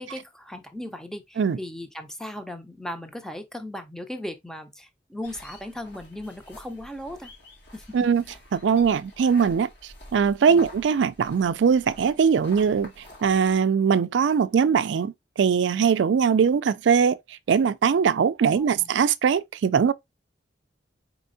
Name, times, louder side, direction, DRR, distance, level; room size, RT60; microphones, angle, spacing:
voice 1, 0.0-7.3 7.7-7.8 8.2-8.4 10.5-10.7 18.4-18.9, left 1 dB, 5° left, 0.6 m, -37 dB
sound 1, 5.2-13.6, left 1 dB, 70° left, 2.1 m, -48 dB
voice 2, 8.5-9.7 10.1-12.9 13.2-19.9, right 6 dB, 75° right, 0.4 m, -21 dB
4.5 x 4.2 x 2.6 m
head